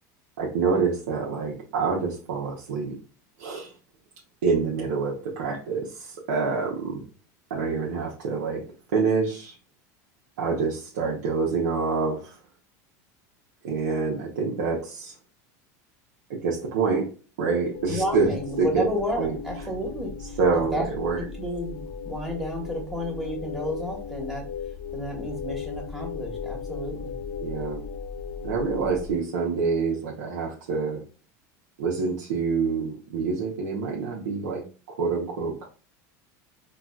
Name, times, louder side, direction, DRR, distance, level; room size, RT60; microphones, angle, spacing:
voice 1, 0.4-3.0 3.4-3.7 4.4-7.0 7.5-8.6 8.9-9.5 10.4-12.4 13.6-15.1 16.3-17.1 17.4-18.9 19.2-19.4 20.4-21.2 27.4-27.8 28.4-31.0 31.8-35.7, right 4 dB, 90° right, -4 dB, 0.8 m, -26 dB
sound 1, 17.7-29.2, left 6 dB, 55° left, 0.8 m, -36 dB
voice 2, 17.9-20.8 21.2-21.8 22.0-24.5 24.9-27.2, equal, 5° right, -1 dB, 1.2 m, -32 dB
3.8 x 2.3 x 2.3 m, 0.36 s
supercardioid pair, 120°, 9 cm